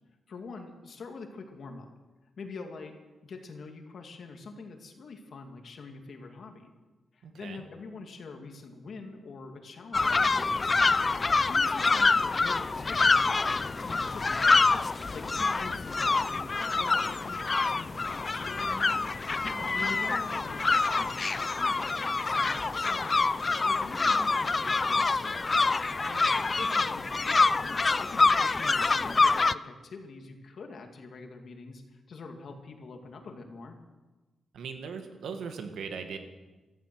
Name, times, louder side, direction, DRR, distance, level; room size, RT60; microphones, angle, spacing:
voice 1, 0.3-1.9 2.4-2.9 3.2-6.7 7.1-10.7 11.5-16.5 16.8-19.1 19.5-23.2 23.6-25.5 26.5-33.8, left 4 dB, 60° left, 4 dB, 2.3 m, -45 dB
voice 2, 7.2-7.6 19.5-19.8 26.0-26.5 34.5-36.2, right 5 dB, 90° right, 6 dB, 1.8 m, -40 dB
sound 1, 9.9-29.5, left 3 dB, 30° left, 0.4 m, -26 dB
16.0 x 13.5 x 6.1 m, 1.2 s
cardioid pair, 115°, 0 cm